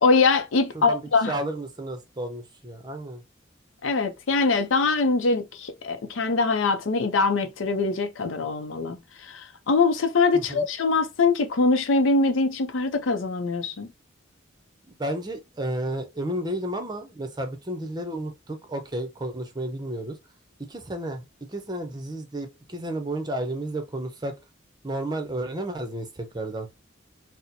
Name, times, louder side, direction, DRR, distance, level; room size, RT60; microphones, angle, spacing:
voice 1, 0.0-1.3 3.8-9.0 9.3-13.9, left 3 dB, 85° left, 0.6 m, -23 dB
voice 2, 0.7-3.2 10.3-10.7 15.0-20.2 20.7-24.3 24.8-26.7, right 1 dB, 20° right, 0.6 m, -32 dB
4.1 x 2.1 x 2.6 m
head